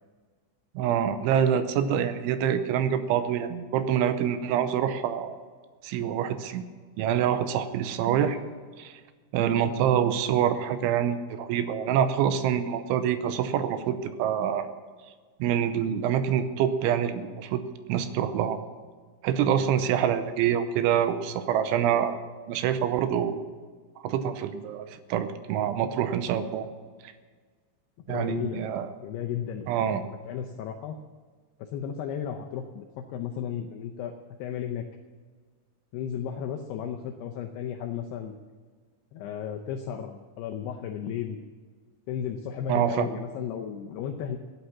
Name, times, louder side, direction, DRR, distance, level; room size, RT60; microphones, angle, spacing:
voice 1, 0.8-5.4 5.8-6.6 7.0-8.4 8.8-8.9 9.3-14.7 15.4-17.6 17.9-18.6 19.2-22.2 22.5-23.4 24.0-26.7 28.1-28.9 29.7-30.0 42.7-43.1, right 9 dB, 85° right, 10 dB, 3.1 m, -26 dB
voice 2, 28.1-28.6 29.0-30.0 30.3-31.0 31.6-34.1 34.4-34.8 35.9-38.4 39.1-41.4 42.1-44.4, left 8 dB, 85° left, 4 dB, 2.3 m, -34 dB
16.0 x 9.5 x 7.3 m, 1.5 s
omnidirectional pair, 5.6 m